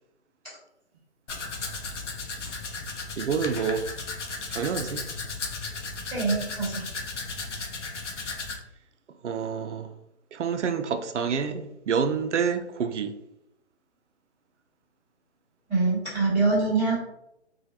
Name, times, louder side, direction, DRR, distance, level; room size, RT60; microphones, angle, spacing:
Domestic sounds home sounds, 1.3-8.6, left 4 dB, 85° left, 0.7 m, -35 dB
voice 1, 3.2-3.9 4.5-5.0 9.2-9.9 10.3-13.1, right 6 dB, 85° right, 0.5 m, -28 dB
voice 2, 6.1-6.9 15.7-17.0, right 3 dB, ahead, 0.4 m, -24 dB
3.0 x 2.3 x 2.7 m
figure-of-eight pair, 140°, 35 cm